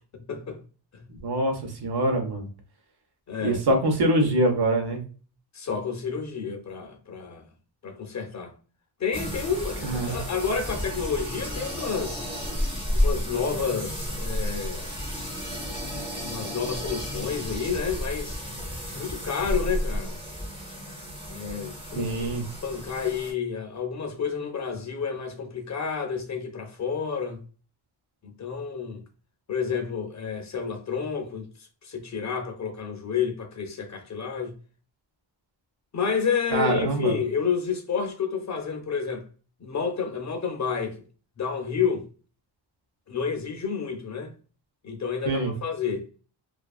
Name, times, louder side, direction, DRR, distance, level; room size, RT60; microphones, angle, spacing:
voice 1, 0.1-0.6 0.9-1.0 3.3-3.6 5.5-7.5 7.8-8.5 9.0-12.3 12.9-14.9 16.2-18.4 18.9-20.2 21.3-22.3 22.6-27.4 28.2-29.0 29.5-31.5 31.8-34.5 35.9-39.2 39.6-40.9 41.4-42.0 43.1-44.3 44.8-46.0, left 6 dB, 40° left, 0.4 m, -30 dB
voice 2, 1.2-2.5 3.4-5.0 9.8-10.2 22.0-22.4 36.5-37.2 45.3-45.5, right 1 dB, 55° right, 0.8 m, -24 dB
sound 1, 9.1-23.3, equal, 10° right, 0.6 m, -32 dB
2.4 x 2.4 x 2.3 m
wide cardioid pair, 165°, 47 cm